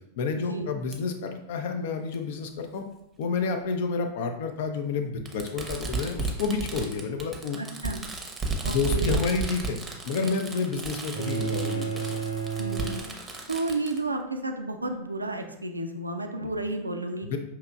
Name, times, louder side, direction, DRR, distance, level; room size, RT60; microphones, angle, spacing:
voice 1, 0.2-2.8 3.2-7.6 8.7-9.8 10.1-12.2 16.4-16.5 17.2-17.4, left 4 dB, 55° left, 6 dB, 0.5 m, -29 dB
Fireworks, 0.9-1.0 2.1-2.2 3.5-3.6 5.3-14.0, right 3 dB, 15° right, 0.7 m, -33 dB
voice 2, 7.6-8.0 8.6-9.2 10.7-10.8 12.6-13.0 13.5-17.4, right 2 dB, 80° right, 5 dB, 0.4 m, -32 dB
sound 1, 11.1-13.7, right 6 dB, 85° left, 1.3 m, -32 dB
5.6 x 2.9 x 2.3 m, 0.81 s
figure-of-eight pair, 90°, 0 cm